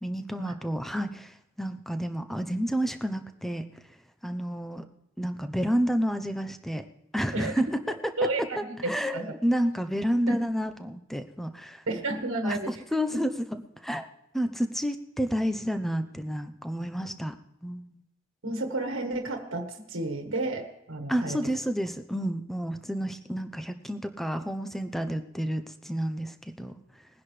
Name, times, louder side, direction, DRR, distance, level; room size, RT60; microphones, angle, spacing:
voice 1, 0.0-3.6 4.2-4.8 5.2-6.8 7.1-7.7 8.9-11.8 12.4-12.6 12.9-13.3 13.8-14.0 14.3-17.3 17.6-18.0 21.1-26.7, equal, ahead, 8 dB, 0.8 m, -30 dB
voice 2, 7.3-7.6 8.2-9.3 10.3-10.4 11.9-12.8 17.0-17.1 18.4-21.6, right 2 dB, 80° right, 4 dB, 1.6 m, -31 dB
21.0 x 10.5 x 3.3 m, 0.84 s
head